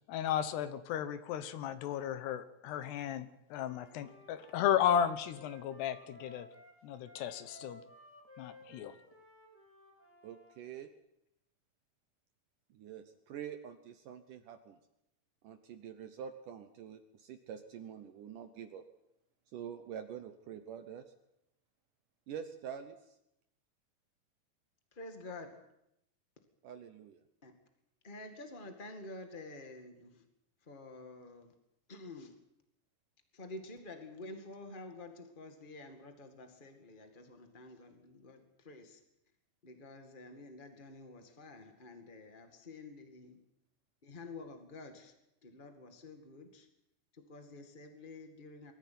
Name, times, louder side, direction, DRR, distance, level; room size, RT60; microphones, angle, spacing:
voice 1, 0.1-6.5 6.8-7.8 8.4-8.9, left 9 dB, 80° left, 12 dB, 3.2 m, -34 dB
Wind instrument woodwind instrument, 3.5-10.5, left 1 dB, 5° left, 5.7 m, -57 dB
voice 2, 10.2-10.9 12.7-14.8 15.4-18.8 19.5-21.0 22.3-23.0 26.6-27.2, right 8 dB, 70° right, 8 dB, 2.1 m, -46 dB
voice 3, 24.9-25.6 27.4-27.5 28.0-30.2 30.7-31.5 31.9-32.4 33.3-39.0 39.6-43.4 44.0-45.1 45.4-46.7 47.1-48.7, left 2 dB, 45° left, 6 dB, 0.6 m, -49 dB
23.0 x 14.5 x 9.4 m, 0.82 s
omnidirectional pair, 4.8 m